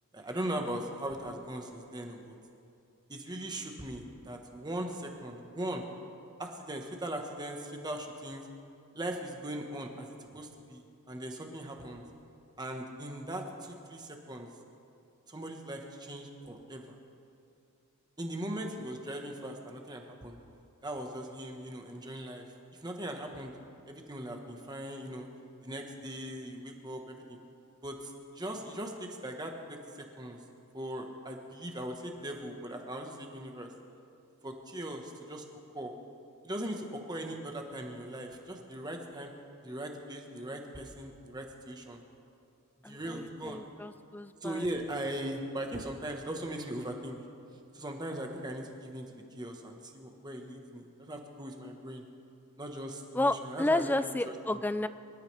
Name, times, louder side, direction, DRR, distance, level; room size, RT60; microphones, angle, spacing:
voice 1, 0.1-2.3 3.1-5.8 6.4-8.5 8.9-10.1 10.3-12.0 12.6-14.5 15.3-16.9 18.2-20.4 20.8-22.4 22.8-23.5 23.9-25.3 25.6-27.4 27.8-30.4 30.7-33.7 34.4-35.4 35.7-35.9 36.4-39.3 39.6-42.0 42.9-43.6 44.4-47.2 47.7-52.0 52.6-54.6, right 1 dB, 20° right, 2 dB, 1.3 m, -39 dB
voice 2, 42.8-44.7 53.1-54.9, left 2 dB, 10° left, 12 dB, 0.3 m, -31 dB
25.0 x 13.0 x 3.4 m, 2.5 s
head